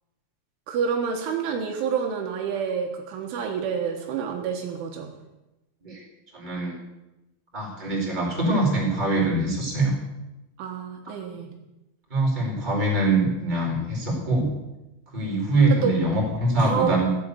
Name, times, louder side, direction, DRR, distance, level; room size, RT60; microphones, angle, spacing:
voice 1, 0.7-5.1 10.6-11.5 15.6-15.9 16.6-16.9, right 6 dB, 75° right, 3 dB, 3.6 m, -28 dB
voice 2, 6.3-6.7 7.5-9.9 12.1-14.5 15.1-17.0, right 2 dB, 10° right, -3 dB, 4.1 m, -23 dB
15.0 x 8.5 x 8.3 m, 1.0 s
omnidirectional pair, 5.7 m